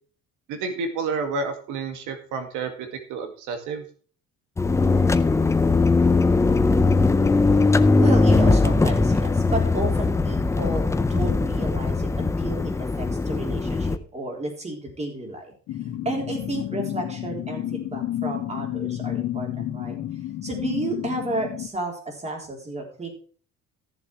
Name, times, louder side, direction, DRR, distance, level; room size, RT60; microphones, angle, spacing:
voice 1, 0.5-3.9, right 4 dB, 85° right, 6 dB, 2.1 m, -30 dB
sound 1, 4.6-14.0, left 3 dB, 10° left, 0.5 m, -20 dB
voice 2, 7.8-15.5 16.0-19.9 20.4-23.1, right 2 dB, 20° right, 1 dB, 3.8 m, -32 dB
sound 2, 15.7-21.7, left 12 dB, 75° left, 1.8 m, -31 dB
14.5 x 7.2 x 4.8 m, 0.42 s
cardioid pair, 150°, 30 cm